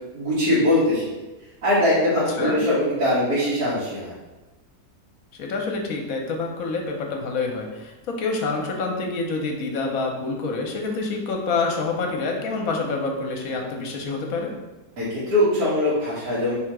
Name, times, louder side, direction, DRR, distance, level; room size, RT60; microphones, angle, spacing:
voice 1, 0.1-1.0 1.6-4.1 15.0-16.5, left 1 dB, 75° right, -12 dB, 1.8 m, -21 dB
voice 2, 5.3-14.5, left 3 dB, 70° left, 2 dB, 1.1 m, -27 dB
3.7 x 2.8 x 4.6 m, 1.1 s
omnidirectional pair, 1.6 m